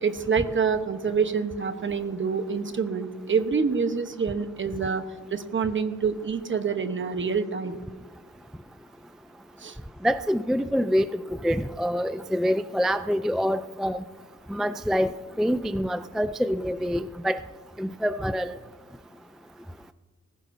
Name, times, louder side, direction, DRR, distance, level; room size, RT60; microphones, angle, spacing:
voice 1, 0.0-5.0 5.3-7.8 9.6-9.8, right 5 dB, 40° right, 9 dB, 0.9 m, -26 dB
voice 2, 10.0-14.0 14.5-15.1 15.4-17.4 17.8-18.6, equal, ahead, 11 dB, 0.3 m, -26 dB
20.0 x 15.0 x 2.6 m, 1.4 s
wide cardioid pair, 100°, 31 cm